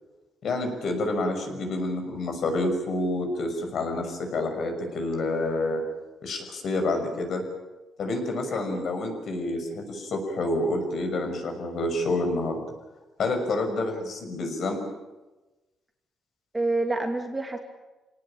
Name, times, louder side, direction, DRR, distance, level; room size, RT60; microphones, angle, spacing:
voice 1, 0.4-5.8 6.2-7.4 8.0-12.6 13.2-14.9, left 2 dB, 50° left, 5 dB, 6.3 m, -28 dB
voice 2, 8.3-8.8 16.5-17.6, right 2 dB, 10° right, 3 dB, 2.6 m, -29 dB
28.0 x 18.5 x 8.9 m, 1.1 s
cardioid pair, 145°, 0 cm